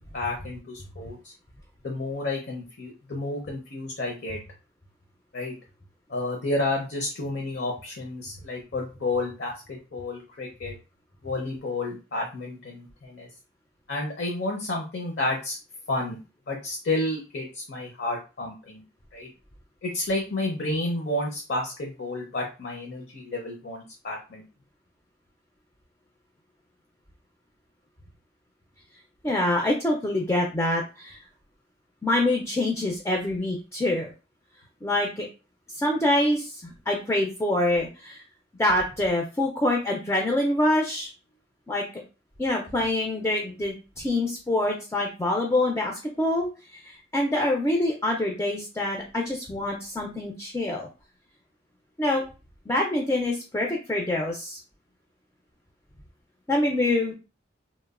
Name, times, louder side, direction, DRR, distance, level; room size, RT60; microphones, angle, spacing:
voice 1, 0.1-1.2 1.8-4.4 5.3-5.5 6.1-10.7 11.2-13.3 13.9-15.6 15.9-16.2 16.5-18.8 19.1-19.3 19.8-24.4, left 2 dB, 60° left, 0 dB, 0.6 m, -31 dB
voice 2, 29.2-31.2 32.0-34.1 34.8-35.3 35.7-38.2 38.6-41.1 41.7-41.8 42.4-50.9 52.0-52.2 52.7-54.6 56.5-57.1, left 1 dB, 15° left, 0 dB, 0.4 m, -25 dB
3.0 x 2.0 x 2.4 m, 0.31 s
head